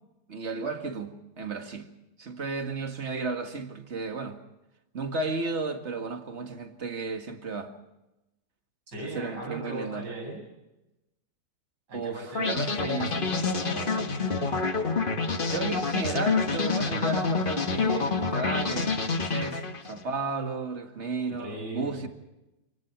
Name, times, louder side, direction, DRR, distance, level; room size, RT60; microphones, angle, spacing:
voice 1, 0.3-1.9 2.2-4.4 4.9-7.7 9.0-10.1 11.9-13.1 15.5-22.1, right 3 dB, 40° right, 5 dB, 2.2 m, -33 dB
voice 2, 8.9-10.4 11.9-14.6 21.3-22.1, right 1 dB, 80° right, 1 dB, 7.9 m, -39 dB
sound 1, 12.3-20.0, left 4 dB, 30° left, 1.4 m, -28 dB
27.0 x 19.5 x 6.1 m, 0.97 s
omnidirectional pair, 1.8 m